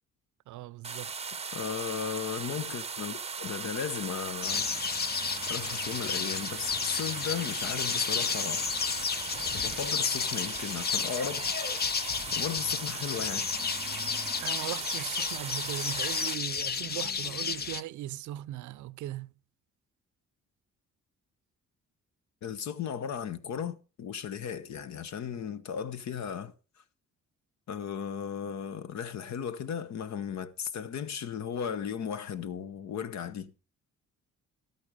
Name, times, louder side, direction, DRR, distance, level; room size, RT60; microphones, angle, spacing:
voice 1, 0.5-1.1 14.4-19.3, right 14 dB, 75° right, 0.5 m, -39 dB
sound 1, 0.8-16.3, right 5 dB, 20° right, 0.7 m, -38 dB
voice 2, 1.5-4.7 5.5-8.7 9.4-11.5 12.3-13.5 22.4-26.5 27.7-33.5, left 7 dB, 65° left, 1.1 m, -36 dB
sound 2, 4.4-17.8, left 6 dB, 35° left, 0.6 m, -32 dB
12.5 x 8.7 x 5.0 m
cardioid pair, 90°, 30 cm